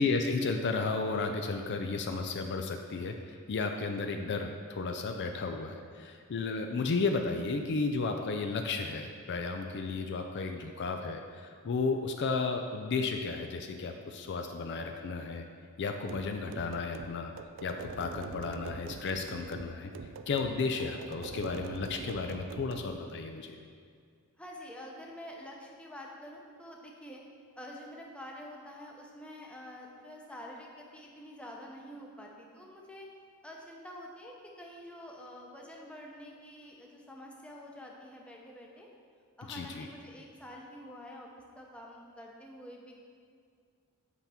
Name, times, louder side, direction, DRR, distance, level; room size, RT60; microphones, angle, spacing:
voice 1, 0.0-15.4 15.8-17.3 17.6-19.9 20.3-23.6 39.5-39.9, left 4 dB, 55° left, 5 dB, 0.4 m, -33 dB
sound 1, 16.1-22.9, right 4 dB, 60° right, 0.4 m, -44 dB
voice 2, 24.4-27.2 27.6-33.1 33.4-38.9 39.4-41.3 41.6-42.9, equal, 5° left, -1 dB, 0.8 m, -47 dB
8.1 x 5.7 x 3.5 m, 2.1 s
head